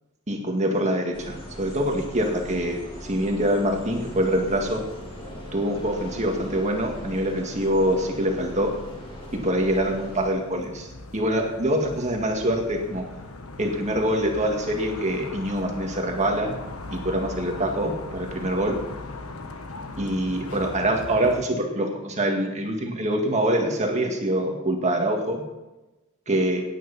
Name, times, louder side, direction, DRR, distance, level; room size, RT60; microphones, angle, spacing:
voice 1, 0.3-4.8 5.5-8.7 9.3-10.9 11.1-13.0 13.6-16.6 16.9-18.8 20.0-25.4 26.3-26.6, right 1 dB, 35° right, 2 dB, 1.9 m, -25 dB
sound 1, 1.1-10.3, equal, 25° left, 4.3 m, -40 dB
sound 2, 3.8-21.4, left 2 dB, 80° left, 1.3 m, -40 dB
18.0 x 9.4 x 4.2 m, 1.1 s
head